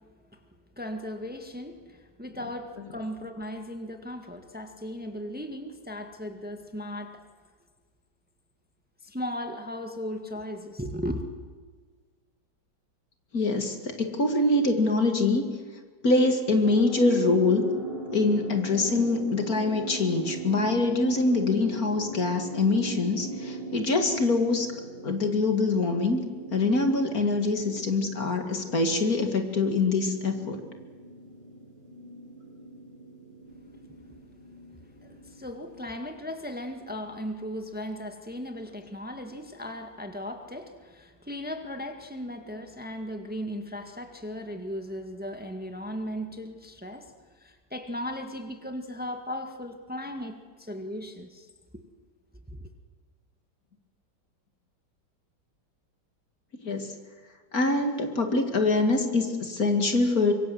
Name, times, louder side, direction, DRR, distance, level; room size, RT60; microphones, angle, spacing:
voice 1, 0.8-7.2 9.0-11.2 35.0-47.1 47.4-51.5 52.5-52.7, equal, 5° right, 5 dB, 1.8 m, -37 dB
voice 2, 13.3-15.5 16.0-17.6 18.1-24.7 25.0-26.2 26.5-30.6 56.6-56.9 57.5-60.3, left 3 dB, 55° left, 5 dB, 2.7 m, -24 dB
sound 1, 16.6-35.9, right 1 dB, 80° right, 8.7 m, -40 dB
25.0 x 24.0 x 7.9 m, 1.5 s
omnidirectional pair, 1.9 m